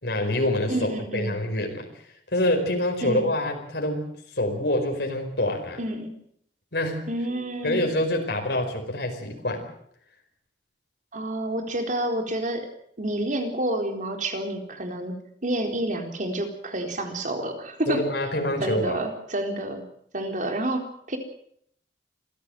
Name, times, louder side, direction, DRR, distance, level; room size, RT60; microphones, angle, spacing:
voice 1, 0.0-1.9 2.3-4.1 4.3-5.8 6.7-7.1 7.6-9.7 17.9-19.0, left 1 dB, 65° left, 3 dB, 4.7 m, -26 dB
voice 2, 0.7-1.3 3.0-3.3 5.8-6.1 7.1-7.8 11.1-12.7 13.0-18.0 18.6-19.8 20.1-21.2, right 1 dB, 45° right, 5 dB, 4.1 m, -29 dB
26.5 x 15.5 x 7.7 m, 0.68 s
head